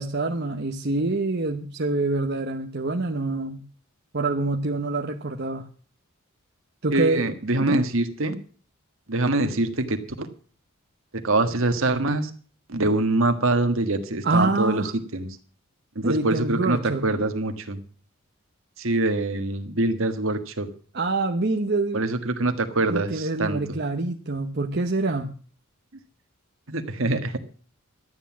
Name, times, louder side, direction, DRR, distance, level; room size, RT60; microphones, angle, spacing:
voice 1, 0.0-3.6 4.1-5.6 6.8-7.2 7.6-7.8 14.2-14.9 16.0-17.0 20.9-22.0 22.9-25.3, right 2 dB, 50° right, 4 dB, 1.0 m, -26 dB
voice 2, 6.9-8.4 9.1-10.3 11.1-12.3 12.7-15.3 15.9-17.8 18.8-20.7 21.9-23.8 26.7-27.4, right 2 dB, 65° right, 8 dB, 1.7 m, -24 dB
13.0 x 9.5 x 7.3 m, 0.43 s
head